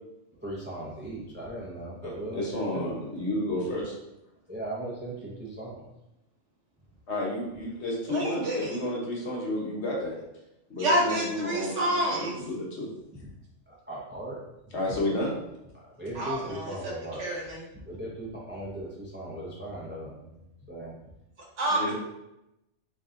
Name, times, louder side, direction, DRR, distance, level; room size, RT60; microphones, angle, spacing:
voice 1, 0.3-2.9 4.5-5.9 13.1-13.3 13.7-14.4 15.7-17.2 17.7-21.0, right 1 dB, 15° right, -5 dB, 0.5 m, -38 dB
voice 2, 2.0-4.0 7.1-10.1 10.7-12.9 14.7-15.3 21.7-21.9, left 1 dB, 60° left, -3 dB, 1.3 m, -31 dB
voice 3, 8.1-8.8 10.8-12.3 16.1-16.9 17.2-17.6 21.6-21.9, right 1 dB, 70° right, -2 dB, 1.3 m, -28 dB
3.8 x 2.8 x 3.6 m, 0.90 s
omnidirectional pair, 1.3 m